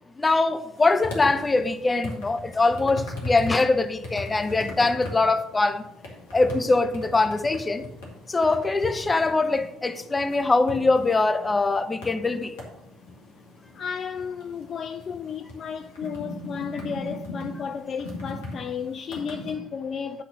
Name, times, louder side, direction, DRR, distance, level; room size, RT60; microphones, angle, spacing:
voice 1, 0.2-5.8 6.3-7.9 8.3-12.5, left 3 dB, 20° left, 0.8 m, -22 dB
sound 1, 0.8-19.6, left 1 dB, 75° left, 2.3 m, -39 dB
voice 2, 13.7-20.2, left 6 dB, 45° left, 0.4 m, -33 dB
9.3 x 4.2 x 6.8 m
hypercardioid pair, 55°, 0 cm